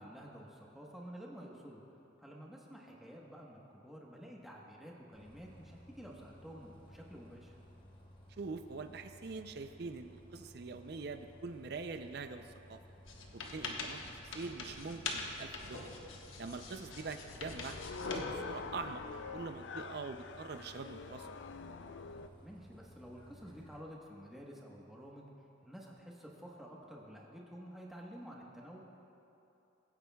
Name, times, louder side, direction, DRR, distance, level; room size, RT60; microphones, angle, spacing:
voice 1, 0.0-1.8 2.2-7.6 13.8-13.9 22.4-25.3 25.6-28.8, equal, ahead, -3 dB, 1.1 m, -51 dB
Bus, 5.1-23.8, equal, 25° left, 1.1 m, -58 dB
voice 2, 8.4-12.8 13.3-15.9 16.4-17.8 18.1-21.3, right 4 dB, 55° right, 8 dB, 0.5 m, -44 dB
sound 1, 13.1-19.4, left 3 dB, 85° left, 1.2 m, -44 dB
sound 2, 16.8-22.3, left 5 dB, 65° left, 0.4 m, -46 dB
23.0 x 9.7 x 2.3 m, 2.9 s
head